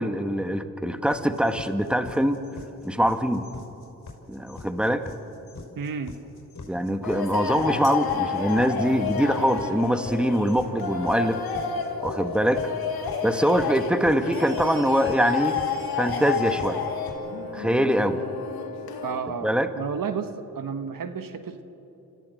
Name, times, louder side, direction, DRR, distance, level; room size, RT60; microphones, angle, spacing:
voice 1, 0.0-2.4 2.8-3.4 4.3-5.1 6.7-11.4 12.0-12.7 13.2-15.6 15.9-16.8 17.5-18.2 19.4-19.7, equal, 5° right, 8 dB, 1.8 m, -23 dB
sound 1, 1.1-17.1, left 3 dB, 55° left, 5.9 m, -43 dB
voice 2, 5.8-6.1 19.0-21.6, right 6 dB, 65° right, 9 dB, 1.4 m, -32 dB
sound 2, 7.0-19.2, left 6 dB, 90° left, 2.1 m, -30 dB
Bell, 14.2-17.3, right 5 dB, 80° right, 6.7 m, -51 dB
28.5 x 15.0 x 7.9 m, 3.0 s
supercardioid pair, 40°, 36 cm